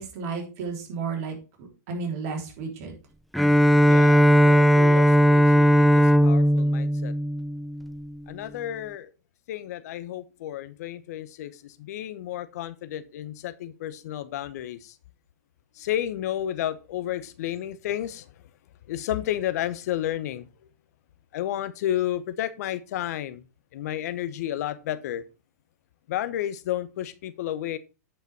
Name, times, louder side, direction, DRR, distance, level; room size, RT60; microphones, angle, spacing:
voice 1, 0.0-2.9, right 5 dB, 55° right, 3.8 m, -33 dB
Bowed string instrument, 3.3-8.1, equal, ahead, 0.4 m, -18 dB
voice 2, 3.9-7.1 8.3-9.1 9.5-15.0 15.7-18.3 18.9-20.5 21.3-23.5 23.7-25.2 26.1-27.8, left 12 dB, 65° left, 0.9 m, -32 dB
9.3 x 5.6 x 4.6 m
hypercardioid pair, 115°, 9 cm